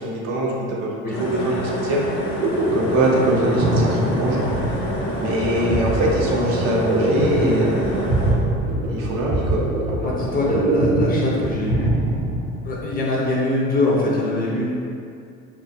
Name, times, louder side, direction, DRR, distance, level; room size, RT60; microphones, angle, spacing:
voice 1, 0.0-2.0 2.7-4.5 5.1-8.1 8.9-9.6, right 1 dB, 60° right, -3 dB, 0.6 m, -23 dB
sound 1, 1.1-8.3, left 1 dB, 70° left, 0.6 m, -28 dB
sound 2, 2.4-12.9, right 1 dB, 20° right, 0.6 m, -23 dB
voice 2, 5.2-5.8 10.0-11.9 12.6-14.7, left 2 dB, 25° left, -3 dB, 0.4 m, -23 dB
2.6 x 2.2 x 2.5 m, 2.4 s
hypercardioid pair, 65°, 36 cm